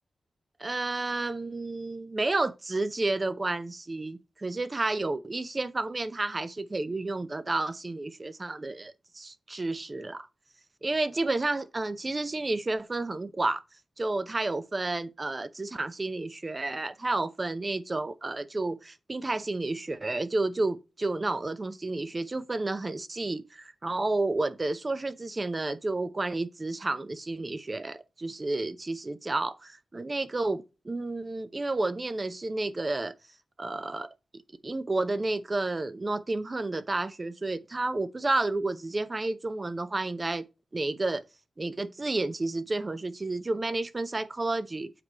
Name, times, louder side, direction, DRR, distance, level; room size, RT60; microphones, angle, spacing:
voice 1, 0.6-10.3 10.8-13.6 14.0-33.1 33.6-34.1 34.6-40.5 40.7-41.2 41.6-44.9, right 2 dB, 25° right, 0.6 m, -31 dB
7.7 x 4.7 x 4.1 m
wide cardioid pair, 160°, 0 cm